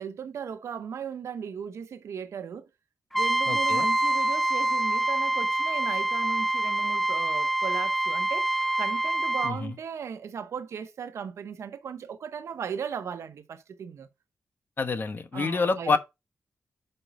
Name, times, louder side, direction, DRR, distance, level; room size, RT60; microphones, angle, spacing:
voice 1, 0.0-2.7 3.1-14.1 15.3-16.0, right 7 dB, 80° right, 0.9 m, -37 dB
Trumpet, 3.1-9.5, right 1 dB, 5° left, 0.6 m, -26 dB
voice 2, 3.5-3.9 9.4-9.7 14.8-16.0, left 4 dB, 45° left, 1.1 m, -27 dB
5.5 x 5.0 x 5.6 m
cardioid pair, 80°, 5 cm